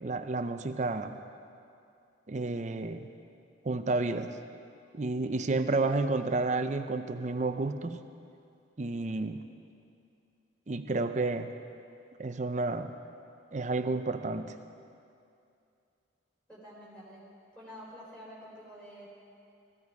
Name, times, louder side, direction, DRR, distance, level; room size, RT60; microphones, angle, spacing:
voice 1, 0.0-1.2 2.3-3.1 3.6-4.3 4.9-8.0 8.8-9.4 10.7-11.5 12.2-12.9 13.5-14.6, right 3 dB, 35° right, 8 dB, 0.5 m, -31 dB
voice 2, 16.5-17.2 17.5-19.1, equal, 5° left, -6 dB, 4.1 m, -48 dB
17.0 x 15.0 x 4.8 m, 2.5 s
head